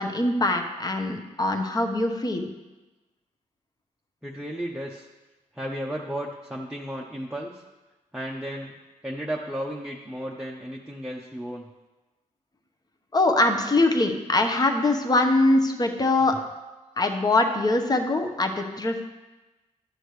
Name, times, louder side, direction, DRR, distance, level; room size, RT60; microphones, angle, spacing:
voice 1, 0.0-2.5 13.1-16.4 17.0-19.1, left 2 dB, 30° left, 4 dB, 1.0 m, -23 dB
voice 2, 4.2-5.1 5.5-7.6 8.1-8.7 9.0-11.7, equal, 5° right, -1 dB, 0.8 m, -34 dB
11.5 x 6.4 x 3.2 m, 1.1 s
cardioid pair, 70°, 14 cm